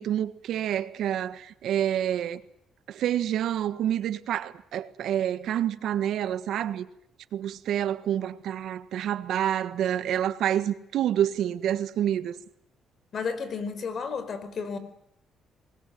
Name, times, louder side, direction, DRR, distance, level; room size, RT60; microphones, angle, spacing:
voice 1, 0.0-2.4 2.9-6.9 7.3-12.4, right 10 dB, 75° right, 1.5 m, -28 dB
voice 2, 13.1-14.8, left 5 dB, 55° left, 4.4 m, -32 dB
24.5 x 20.5 x 9.3 m
cardioid pair, 90°, 0 cm